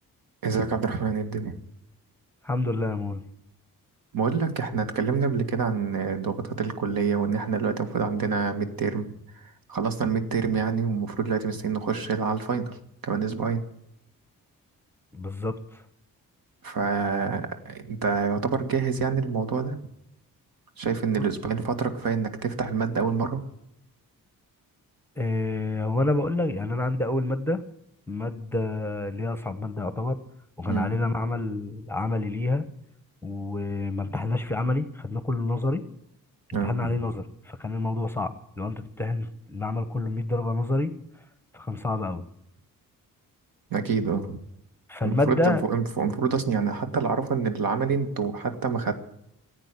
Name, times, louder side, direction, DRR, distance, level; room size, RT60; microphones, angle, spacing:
voice 1, 0.4-1.5 4.1-9.1 9.4-12.8 13.0-13.6 16.6-19.8 20.8-23.4 30.7-31.0 36.5-36.9 43.7-44.4 45.0-49.0, right 5 dB, 80° right, 8 dB, 1.9 m, -27 dB
voice 2, 2.4-3.2 15.1-15.6 21.2-21.3 25.2-27.6 28.1-30.2 30.6-32.6 33.2-35.8 36.6-40.9 41.5-42.2 44.9-45.6, left 2 dB, 5° left, 11 dB, 1.0 m, -28 dB
15.5 x 8.8 x 9.8 m, 0.78 s
wide cardioid pair, 135°, 34 cm